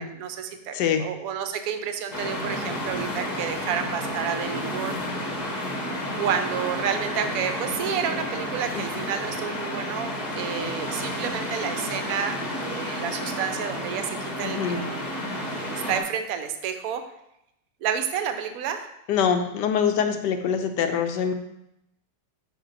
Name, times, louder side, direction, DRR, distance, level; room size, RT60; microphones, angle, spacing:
voice 1, 0.0-4.9 6.2-15.0 15.6-17.0 17.8-18.9, right 8 dB, 65° right, 8 dB, 0.9 m, -30 dB
voice 2, 0.7-1.0 8.7-9.0 14.4-14.8 19.1-21.3, left 7 dB, 80° left, 7 dB, 1.2 m, -24 dB
sound 1, 2.1-16.0, left 1 dB, 35° left, 0.8 m, -31 dB
5.1 x 5.0 x 3.9 m, 0.82 s
omnidirectional pair, 1.9 m